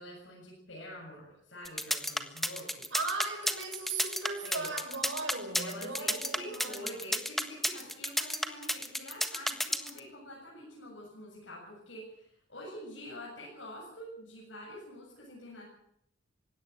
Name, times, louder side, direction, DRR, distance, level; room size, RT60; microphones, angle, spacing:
voice 1, 0.0-2.9 4.4-4.7 5.6-15.6, equal, 80° left, 7.6 m, -46 dB
sound 1, 1.6-10.0, equal, ahead, 1.4 m, -31 dB
voice 2, 2.9-6.9, right 3 dB, 85° right, 6.4 m, -37 dB
20.0 x 17.0 x 8.1 m
head